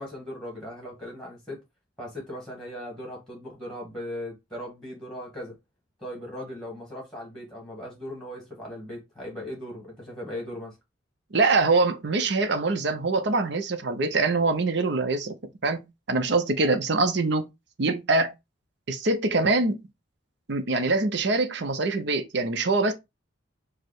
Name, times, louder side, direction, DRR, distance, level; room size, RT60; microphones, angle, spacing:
voice 1, 0.0-1.6 2.0-5.5 6.0-10.7, left 1 dB, ahead, 1.4 m, -38 dB
voice 2, 11.3-15.3 15.6-17.5 17.8-18.3 18.9-19.8 20.5-22.9, right 3 dB, 55° right, 0.6 m, -24 dB
4.8 x 2.1 x 4.6 m
head